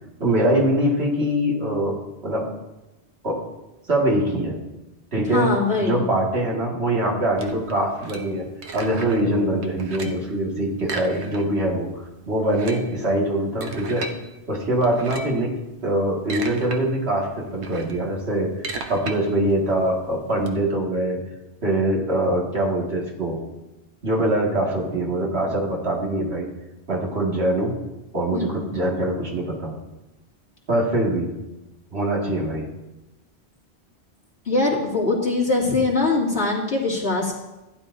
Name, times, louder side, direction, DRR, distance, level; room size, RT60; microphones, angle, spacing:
voice 1, 0.2-2.5 3.2-3.4 3.9-4.6 5.1-5.5 5.8-8.4 8.7-11.9 12.3-14.1 14.5-15.5 15.8-18.5 18.9-21.2 21.6-23.4 24.0-26.5 26.9-27.8 28.1-29.7 30.7-31.3 31.9-32.7, right 1 dB, 70° right, -2 dB, 2.3 m, -23 dB
voice 2, 5.3-6.0 28.3-28.6 34.5-37.3, left 3 dB, 75° left, -4 dB, 2.7 m, -22 dB
sound 1, 7.4-9.3 9.6-10.3 10.8-11.7 12.0-12.1 12.4-14.2 14.8-15.4 16.0-16.8 17.2-20.5, right 3 dB, 90° right, 1.2 m, -35 dB
15.5 x 10.0 x 2.7 m, 1.0 s
omnidirectional pair, 1.1 m